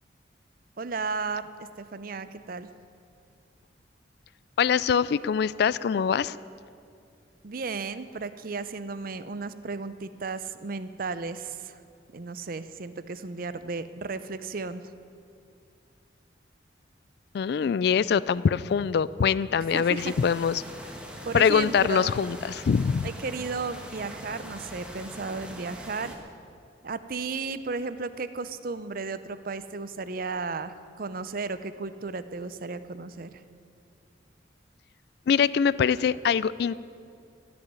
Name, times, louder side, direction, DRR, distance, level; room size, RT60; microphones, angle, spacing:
voice 1, 0.8-2.7 7.4-11.8 12.1-14.8 19.5-20.1 21.2-22.1 23.0-26.2 26.8-33.4, right 4 dB, 50° right, 13 dB, 0.6 m, -34 dB
voice 2, 4.6-6.4 17.3-20.6 21.3-23.1 35.3-36.8, left 7 dB, 60° left, 19 dB, 0.3 m, -23 dB
sound 1, 20.0-26.2, equal, 5° right, 1.4 m, -42 dB
16.0 x 6.9 x 9.5 m, 2.4 s
head